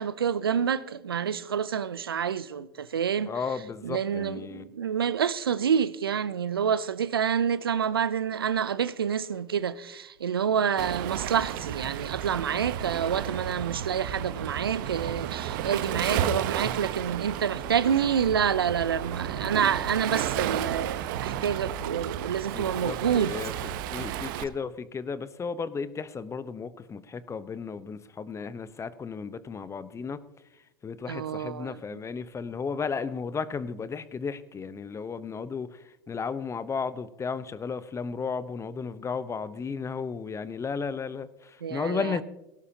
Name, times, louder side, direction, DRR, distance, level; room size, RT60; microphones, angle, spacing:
voice 1, 0.0-3.3 3.8-23.3 31.1-31.8 41.6-42.2, right 8 dB, 85° right, 0.6 m, -28 dB
voice 2, 3.2-4.7 15.8-16.3 22.5-30.2 30.5-42.2, left 5 dB, 25° left, 0.9 m, -34 dB
Waves surf, 10.8-24.4, right 10 dB, 65° right, 1.0 m, -32 dB
18.0 x 17.5 x 2.9 m
hypercardioid pair, 80°, 12 cm